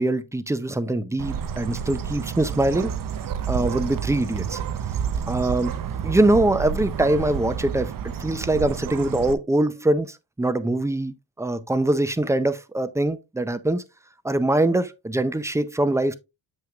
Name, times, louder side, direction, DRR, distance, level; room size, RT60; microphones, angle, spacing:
voice 1, 0.0-2.9 3.5-4.6 5.3-5.8 6.0-13.8 14.2-16.1, right 1 dB, 5° right, 0.4 m, -23 dB
Bird, 1.2-9.3, right 8 dB, 45° right, 0.7 m, -30 dB
7.5 x 5.7 x 2.3 m
cardioid pair, 110°, 48 cm